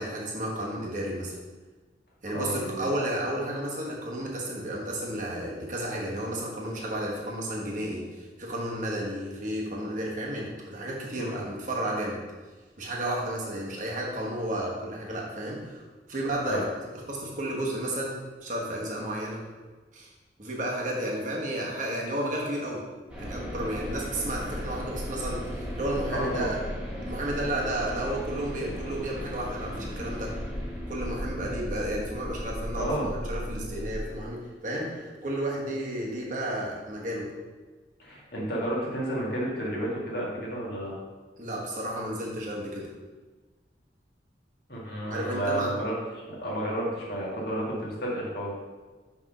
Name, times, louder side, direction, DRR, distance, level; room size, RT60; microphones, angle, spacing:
voice 1, 0.0-1.4 2.2-12.2 12.8-15.8 16.1-16.6 17.1-19.5 19.9-20.1 20.4-22.8 23.2-26.6 27.0-30.4 30.9-37.3 41.4-42.9 45.1-45.7, right 1 dB, 45° right, -3 dB, 1.3 m, -32 dB
voice 2, 2.3-2.9 11.1-11.4 16.4-16.7 26.1-26.5 32.8-33.1 38.0-40.9 44.7-46.0 46.3-48.5, right 1 dB, 60° left, -4 dB, 1.8 m, -31 dB
sound 1, 23.1-34.0, equal, 5° right, 1.5 m, -36 dB
6.2 x 3.6 x 5.4 m, 1.3 s
head